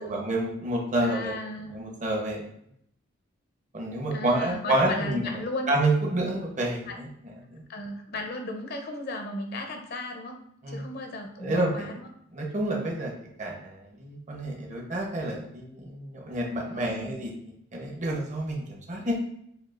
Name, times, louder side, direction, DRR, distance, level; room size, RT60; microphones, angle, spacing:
voice 1, 0.0-1.4 1.6-2.5 3.7-5.3 5.7-7.1 7.5-7.6 10.6-10.9 11.4-11.9 12.3-13.1 13.4-19.2, right 1 dB, 40° right, 0 dB, 0.9 m, -29 dB
voice 2, 1.0-1.8 4.1-5.7 6.6-7.0 7.7-10.4 10.7-11.9 16.7-17.2, left 2 dB, 50° left, 3 dB, 0.6 m, -35 dB
6.8 x 2.4 x 2.4 m, 0.72 s
head